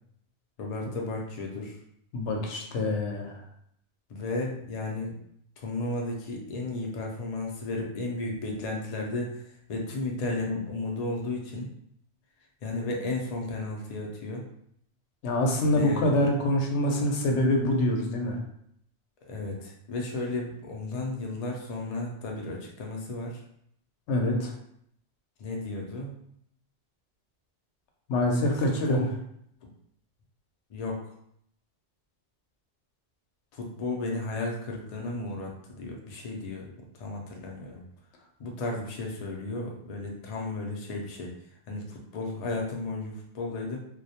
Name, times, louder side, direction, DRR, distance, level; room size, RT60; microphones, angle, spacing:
voice 1, 0.6-1.8 4.1-5.2 5.6-11.7 12.6-14.5 15.6-16.1 19.2-23.4 25.4-26.1 28.5-29.1 30.7-31.1 33.5-37.8 38.4-43.8, left 2 dB, 55° left, 0 dB, 0.4 m, -34 dB
voice 2, 2.1-3.4 15.2-18.4 24.1-24.5 28.1-29.0, left 1 dB, 85° left, 1 dB, 0.9 m, -25 dB
2.2 x 2.1 x 2.7 m, 0.71 s
omnidirectional pair, 1.1 m